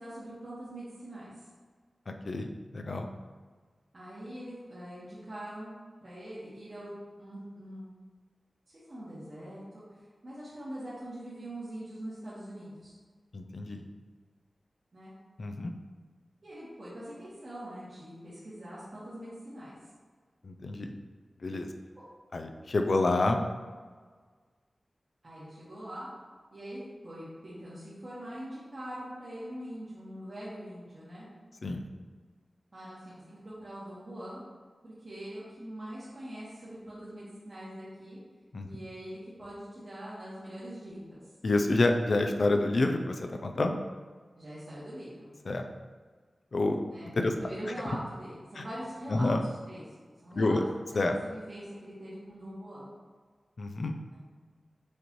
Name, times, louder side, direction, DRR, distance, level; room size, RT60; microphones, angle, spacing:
voice 1, 0.0-1.3 3.9-5.7 6.0-7.9 8.7-9.8 10.2-12.9 14.9-15.1 16.4-19.8 21.9-22.0 25.2-26.1 26.5-31.3 32.7-34.4 34.8-38.2 38.6-41.2 44.4-45.3 46.8-47.1 47.4-49.3 49.7-49.8 50.2-50.6 51.0-52.9 54.1-54.2, right 1 dB, 55° right, -11 dB, 1.4 m, -43 dB
voice 2, 2.1-3.1 13.3-13.8 15.4-15.7 20.4-20.9 21.4-21.7 22.3-23.4 31.6-31.8 38.5-38.7 41.4-43.8 45.5-45.6 46.5-46.8 47.2-47.3 48.6-48.7 49.1-49.4 50.3-50.6 50.9-51.1 53.6-53.9, left 2 dB, 70° left, 5 dB, 0.4 m, -28 dB
6.4 x 2.6 x 3.0 m, 1.5 s
cardioid pair, 45°, 0 cm